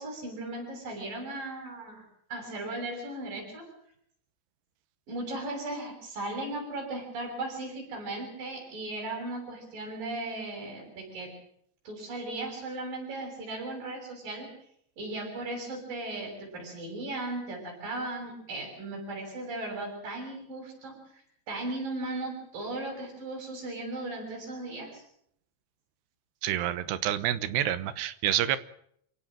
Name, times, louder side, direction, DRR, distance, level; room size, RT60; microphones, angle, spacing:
voice 1, 0.0-3.7 5.1-11.3 11.8-14.5 15.0-21.2 21.5-25.0, right 2 dB, 55° right, 2 dB, 8.2 m, -37 dB
voice 2, 26.4-28.6, right 12 dB, 80° right, 15 dB, 3.2 m, -28 dB
28.5 x 16.5 x 7.6 m, 0.69 s
omnidirectional pair, 4.9 m